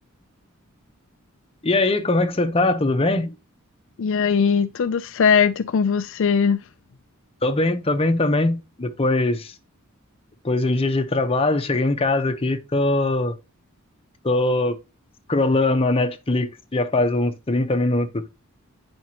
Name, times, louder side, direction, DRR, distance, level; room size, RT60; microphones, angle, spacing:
voice 1, 1.6-3.4 7.4-9.5 10.4-13.3 14.2-14.8 15.3-18.3, left 2 dB, 25° left, 0.8 m, -21 dB
voice 2, 4.0-6.6, left 6 dB, 60° left, 0.4 m, -20 dB
9.2 x 5.2 x 2.9 m
head